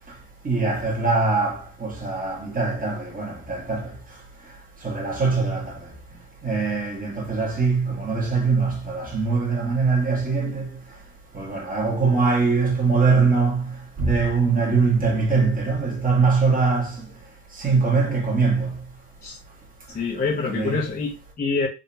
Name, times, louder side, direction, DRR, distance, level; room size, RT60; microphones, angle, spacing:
voice 1, 0.4-3.9 4.8-5.7 6.4-10.7 11.3-13.7 14.0-17.0 17.6-18.7 20.5-20.8, right 4 dB, 25° right, 1.4 m, -22 dB
voice 2, 19.9-21.7, left 4 dB, 30° left, 0.8 m, -26 dB
3.8 x 2.8 x 2.7 m
cardioid pair, 120°, 32 cm